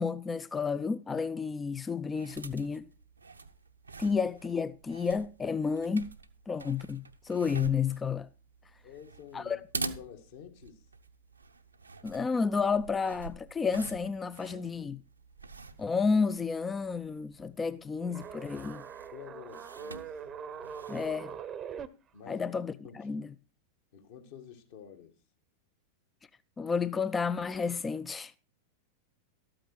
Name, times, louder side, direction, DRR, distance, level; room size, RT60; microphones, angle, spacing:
voice 1, 0.0-2.9 4.0-6.1 6.5-8.3 9.3-9.6 12.0-15.0 15.8-18.8 20.9-21.3 22.3-23.3 26.6-28.4, left 5 dB, 15° left, 0.5 m, -31 dB
sound 1, 2.0-21.4, right 3 dB, 80° right, 0.8 m, -46 dB
voice 2, 8.8-10.8 14.5-15.0 17.6-17.8 19.1-20.2 22.1-23.1 23.9-25.1, left 8 dB, 55° left, 2.1 m, -50 dB
sound 2, 18.0-21.9, right 7 dB, 25° right, 0.8 m, -42 dB
13.0 x 8.8 x 4.7 m
figure-of-eight pair, 90°, 0 cm